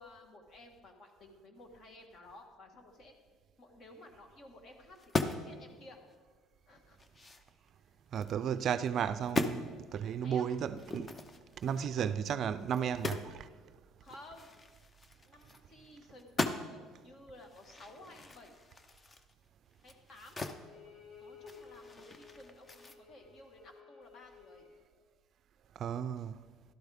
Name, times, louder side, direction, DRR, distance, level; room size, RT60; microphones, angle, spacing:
voice 1, 0.0-3.1 3.6-6.0 6.7-7.0 7.8-8.0 10.2-10.5 11.7-11.9 14.0-14.6 15.2-18.6 19.8-24.6, left 2 dB, 45° left, 1.6 m, -55 dB
sound 1, 4.9-5.6 6.0-6.1 6.6-8.3 8.8-9.0 9.2-9.6 10.8-13.4 13.6-13.7 14.1-15.9 16.2-16.9 17.4-20.6 21.0-23.0, left 2 dB, 20° left, 0.6 m, -39 dB
voice 2, 8.1-11.2 11.6-13.5 25.8-26.4, right 8 dB, 50° right, 0.4 m, -34 dB
Bowed string instrument, 20.5-24.8, left 6 dB, 75° left, 4.0 m, -56 dB
12.0 x 12.0 x 3.5 m
cardioid pair, 125°, 0 cm